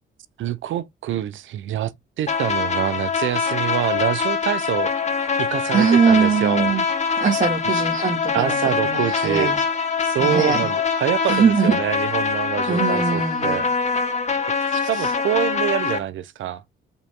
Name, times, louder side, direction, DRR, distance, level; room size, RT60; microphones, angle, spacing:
voice 1, 0.4-4.9 5.4-6.7 8.3-9.5 10.0-13.6 14.6-16.6, right 11 dB, 75° right, 1.0 m, -25 dB
sound 1, 2.3-16.0, left 5 dB, 35° left, 2.3 m, -24 dB
voice 2, 5.7-6.8 7.2-8.6 8.8-9.6 10.2-10.7 11.2-11.8 12.7-13.7 14.8-15.1, right 6 dB, 40° right, 2.6 m, -21 dB
6.8 x 5.7 x 3.9 m
cardioid pair, 90°, 20 cm